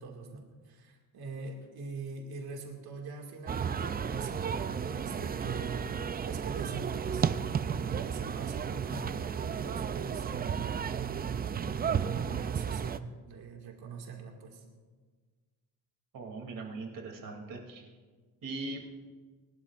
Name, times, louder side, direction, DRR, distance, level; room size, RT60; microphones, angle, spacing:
voice 1, 0.0-5.9 6.2-7.3 7.9-11.3 11.6-14.6, right 4 dB, 85° right, 1 dB, 2.2 m, -43 dB
sound 1, 3.5-13.0, right 7 dB, 25° right, 0.4 m, -33 dB
voice 2, 16.1-17.8 18.4-18.9, right 3 dB, 60° right, 2 dB, 2.8 m, -40 dB
28.5 x 12.5 x 2.5 m, 1.5 s
cardioid pair, 135°, 37 cm